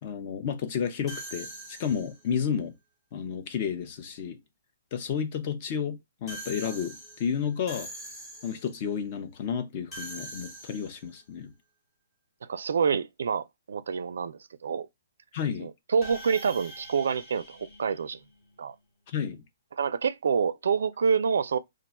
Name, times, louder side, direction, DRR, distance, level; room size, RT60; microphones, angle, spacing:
voice 1, 0.0-2.7 3.1-4.4 4.9-7.9 8.4-11.5 15.3-15.7 19.1-19.4, left 7 dB, 30° left, 0.5 m, -31 dB
sound 1, 1.1-2.3 6.3-8.8 9.9-11.2 16.0-18.6, right 1 dB, 10° left, 1.0 m, -43 dB
voice 2, 12.4-14.9 15.6-18.2 18.6-18.8 19.8-21.6, right 6 dB, 75° right, 0.3 m, -27 dB
2.4 x 2.2 x 3.9 m
hypercardioid pair, 175°, 0 cm